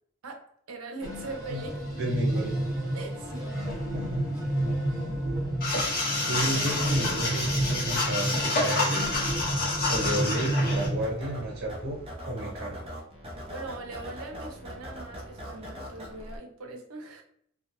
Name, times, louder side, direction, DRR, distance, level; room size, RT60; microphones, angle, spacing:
voice 1, 0.2-1.9 2.9-3.6 13.5-17.2, right 3 dB, 80° right, 3 dB, 0.6 m, -41 dB
sound 1, 1.0-11.1, right 1 dB, 5° right, 1.0 m, -30 dB
voice 2, 2.0-2.5 3.9-4.2 6.3-9.1 9.9-12.0 12.2-12.8, right 1 dB, 50° right, -2 dB, 1.0 m, -32 dB
sound 2, 5.6-10.9, left 2 dB, 45° left, 0.8 m, -28 dB
sound 3, 10.5-16.4, equal, 25° right, 0.5 m, -41 dB
2.2 x 2.2 x 2.9 m, 0.67 s
head